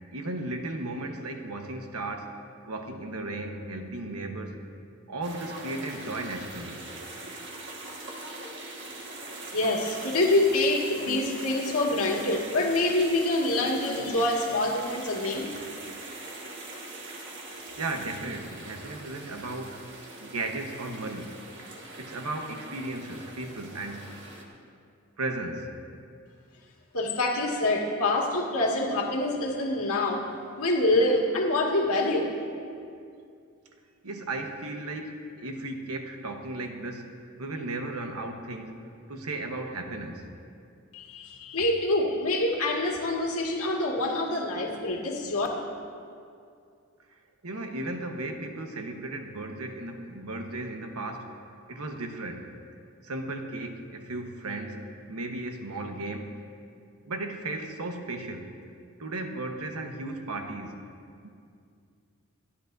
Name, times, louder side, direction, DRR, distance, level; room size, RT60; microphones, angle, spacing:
voice 1, 0.1-4.6 5.1-6.8 17.8-19.8 20.2-21.4 22.0-24.2 25.2-25.7 34.0-37.1 37.4-38.8 39.1-40.3 47.4-51.3 51.7-52.5 53.0-56.4 57.0-58.5 59.0-60.8 61.2-61.3, right 2 dB, 90° right, 4 dB, 1.2 m, -35 dB
sound 1, 5.2-24.4, right 2 dB, 55° right, 1.6 m, -42 dB
voice 2, 9.5-15.5 26.9-30.3 30.6-32.4 40.9-45.5, left 2 dB, 80° left, -2 dB, 1.9 m, -26 dB
28.0 x 10.0 x 2.7 m, 2.4 s
head